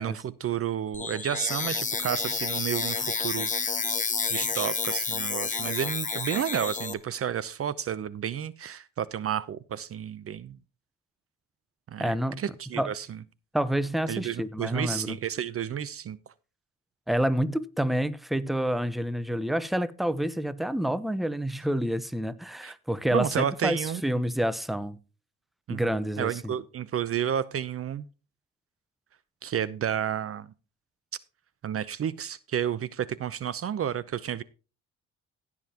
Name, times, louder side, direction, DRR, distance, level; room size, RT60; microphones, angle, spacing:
voice 1, 0.0-3.9 4.3-10.6 11.9-13.2 14.1-16.2 22.6-22.7 23.1-24.0 25.7-25.8 26.2-28.1 29.4-30.5 31.6-34.4, right 9 dB, 50° right, 0.7 m, -31 dB
sound 1, 0.9-6.9, left 4 dB, 25° left, 1.4 m, -30 dB
voice 2, 12.0-12.4 12.8-12.9 13.5-15.2 17.1-25.0 25.7-26.5, equal, ahead, 0.9 m, -28 dB
17.0 x 7.3 x 2.9 m
cardioid pair, 90°, 30 cm